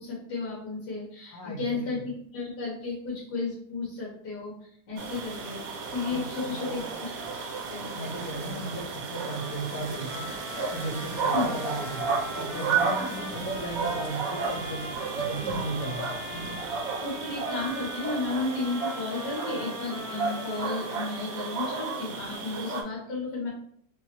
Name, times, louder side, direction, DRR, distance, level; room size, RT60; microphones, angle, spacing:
voice 1, 0.0-2.0 2.3-5.6 5.9-7.2 7.7-8.0 11.3-11.5 17.0-23.5, left 3 dB, 70° left, -5 dB, 1.7 m, -33 dB
voice 2, 1.3-2.0 6.1-6.8 7.9-16.6, right 1 dB, 15° left, -6 dB, 0.7 m, -36 dB
sound 1, 5.0-22.8, right 5 dB, 65° right, 1.0 m, -33 dB
Trumpet, 9.3-21.7, left 2 dB, 50° left, 1.6 m, -42 dB
3.4 x 3.1 x 2.9 m, 0.65 s
omnidirectional pair, 1.8 m